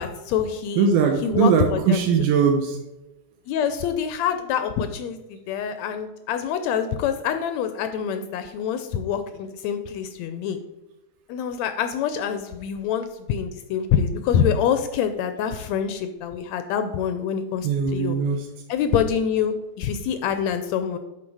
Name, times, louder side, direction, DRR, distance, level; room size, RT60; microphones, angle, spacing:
voice 1, 0.0-0.9 1.2-2.1 3.5-10.6 11.3-18.2 18.7-21.0, left 8 dB, 80° left, 9 dB, 1.6 m, -26 dB
voice 2, 0.8-2.8 17.6-18.5, right 6 dB, 80° right, 3 dB, 2.3 m, -20 dB
11.0 x 4.6 x 4.7 m, 1.0 s
omnidirectional pair, 3.6 m